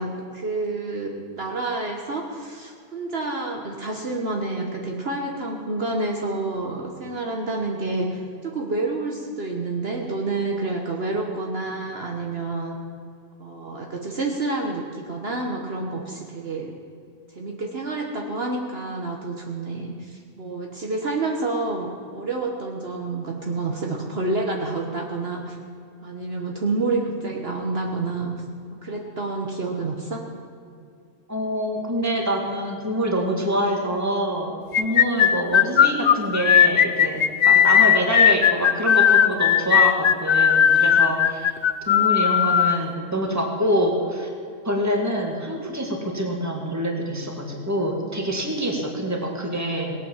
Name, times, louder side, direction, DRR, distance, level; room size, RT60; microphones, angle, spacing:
voice 1, 0.0-12.8 13.4-16.7 17.3-25.6 26.0-28.3 28.8-30.2, right 3 dB, 55° right, 1 dB, 1.4 m, -28 dB
voice 2, 31.3-41.5 41.9-44.3 44.6-49.9, right 1 dB, 15° right, 0 dB, 2.0 m, -26 dB
sound 1, 34.7-42.8, left 9 dB, 85° left, 0.3 m, -17 dB
18.5 x 8.6 x 7.3 m, 2.4 s
omnidirectional pair, 1.3 m